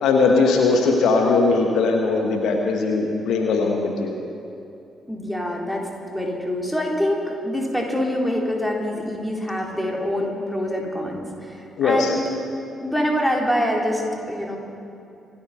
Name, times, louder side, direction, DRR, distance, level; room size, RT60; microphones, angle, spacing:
voice 1, 0.0-4.1 11.8-12.1, left 4 dB, 65° left, 2 dB, 1.3 m, -19 dB
voice 2, 5.1-12.3 12.8-14.0 14.3-14.6, equal, 5° left, -1 dB, 3.7 m, -25 dB
26.0 x 8.8 x 5.8 m, 2.7 s
hypercardioid pair, 40°, 0 cm